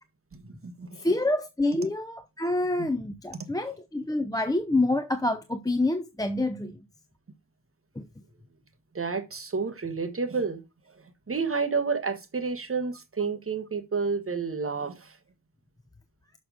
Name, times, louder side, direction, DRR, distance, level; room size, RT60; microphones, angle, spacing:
voice 1, 0.3-1.1 2.8-2.9 3.4-3.5 8.9-10.6 10.9-15.2, right 5 dB, 40° right, 1.4 m, -30 dB
voice 2, 1.0-6.8 8.0-8.1, left 2 dB, 10° left, 0.7 m, -27 dB
6.4 x 6.1 x 5.0 m
wide cardioid pair, 85°, 36 cm